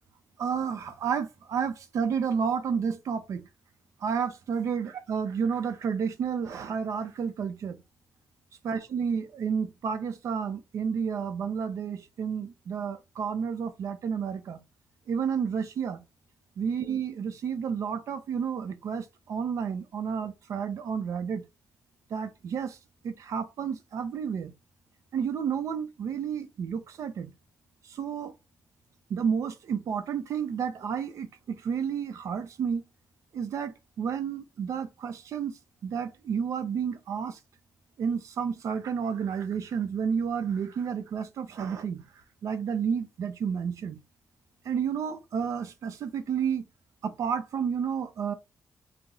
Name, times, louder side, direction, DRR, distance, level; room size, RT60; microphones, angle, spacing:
voice 1, 0.4-3.4 4.0-7.8 8.6-14.6 15.1-16.0 16.6-21.4 22.1-22.8 23.0-24.5 25.1-27.3 27.8-28.3 29.1-32.8 33.3-37.4 38.0-42.0 42.4-44.0 44.6-46.6 47.0-48.3, right 7 dB, 75° right, 0.6 m, -31 dB
4.2 x 2.0 x 3.8 m
wide cardioid pair, 125°, 5 cm